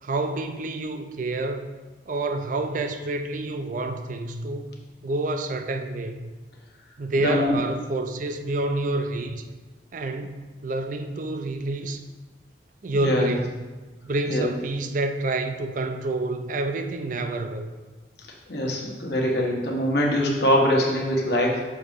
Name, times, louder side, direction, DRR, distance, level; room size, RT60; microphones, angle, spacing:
voice 1, 0.0-1.7 2.1-4.7 5.0-6.3 7.0-9.4 9.9-12.0 12.8-13.5 14.0-17.7, right 2 dB, 45° right, 0.4 m, -28 dB
voice 2, 7.2-7.6 12.9-13.3 14.3-14.5 18.5-21.6, equal, 65° left, 1.2 m, -23 dB
6.3 x 3.0 x 5.0 m
head